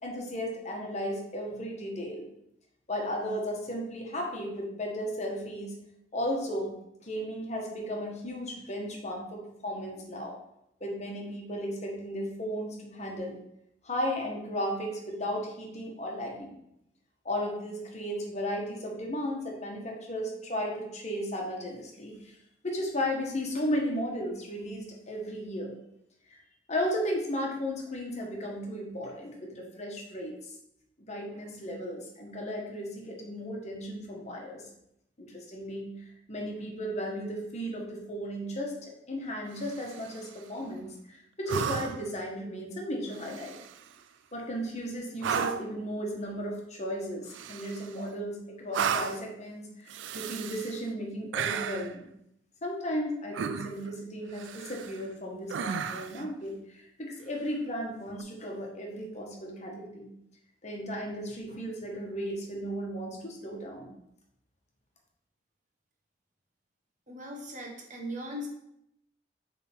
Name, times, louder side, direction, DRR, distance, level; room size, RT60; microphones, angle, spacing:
voice 1, 0.0-2.3 2.9-5.8 6.1-6.7 7.0-10.3 10.8-13.4 13.8-16.5 17.2-22.4 22.6-25.8 26.3-26.4 26.7-30.5 31.0-34.6 35.2-35.9 36.3-43.5 44.3-52.1 52.6-60.1 60.6-63.9, equal, 40° left, 0 dB, 1.3 m, -35 dB
sound 1, 39.5-40.3 41.5-42.2 43.1-43.9 45.2-45.8 47.3-48.1 48.7-49.3 49.9-50.8 51.3-51.9 53.3-53.9 54.3-55.0 55.5-56.3 58.1-58.2, right 7 dB, 90° right, 0.4 m, -34 dB
voice 2, 67.1-68.5, equal, 45° right, 0 dB, 1.4 m, -39 dB
7.0 x 3.6 x 4.4 m, 0.80 s
head